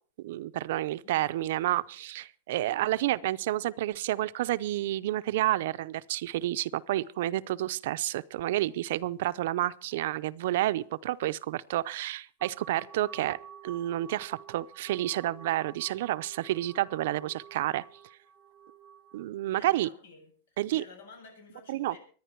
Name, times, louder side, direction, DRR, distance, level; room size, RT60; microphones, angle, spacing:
voice 1, 0.2-13.4 13.6-17.8 19.1-19.9 20.6-20.8 21.7-22.0, right 14 dB, 60° right, 0.6 m, -30 dB
sound 1, 12.4-19.2, right 8 dB, 15° right, 0.9 m, -50 dB
voice 2, 19.5-22.0, left 4 dB, 85° left, 7.8 m, -52 dB
24.5 x 10.0 x 4.5 m
supercardioid pair, 155°, 0 cm